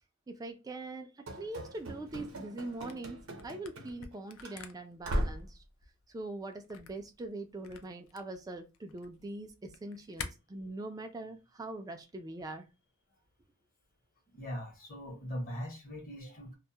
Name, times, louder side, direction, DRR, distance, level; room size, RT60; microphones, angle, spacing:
voice 1, 0.3-5.6 6.1-12.7, right 2 dB, 15° right, 0.3 m, -42 dB
Run / Slam, 1.3-4.1 4.4-4.6 5.0-5.5, equal, 70° right, 0.7 m, -38 dB
Camera, 2.8-10.3, left 6 dB, 70° left, 0.4 m, -49 dB
voice 2, 14.3-16.6, equal, 45° left, 0.9 m, -40 dB
2.2 x 2.1 x 2.7 m
head